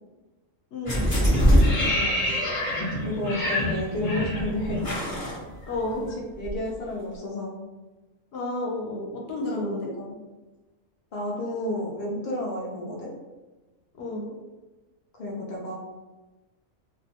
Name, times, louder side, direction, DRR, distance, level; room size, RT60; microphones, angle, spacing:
voice 1, 0.7-1.2 5.7-6.0 8.3-9.9 14.0-14.3, left 2 dB, 60° left, -1 dB, 0.8 m, -31 dB
sound 1, 0.8-6.1 6.4-6.5, equal, 20° left, 0.7 m, -23 dB
voice 2, 1.8-2.5 3.0-4.9 6.4-7.6 9.5-10.2 11.1-13.1 15.2-15.7, left 1 dB, 80° left, -3 dB, 0.4 m, -31 dB
2.3 x 2.2 x 2.8 m, 1.2 s
omnidirectional pair, 1.4 m